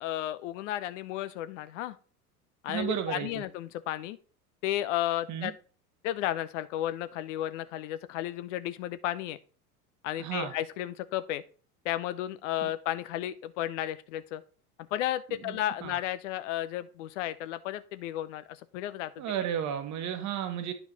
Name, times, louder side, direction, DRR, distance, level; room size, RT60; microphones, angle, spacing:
voice 1, 0.0-2.0 2.6-4.2 4.6-5.5 6.0-9.4 10.0-11.4 11.8-14.4 14.8-19.2, left 13 dB, 50° left, 14 dB, 0.6 m, -33 dB
voice 2, 2.7-3.4 5.3-5.5 10.2-10.5 15.4-15.5 15.8-15.9 19.2-20.7, right 9 dB, 35° right, 8 dB, 1.3 m, -33 dB
9.7 x 4.6 x 4.0 m, 0.40 s
figure-of-eight pair, 80°, 47 cm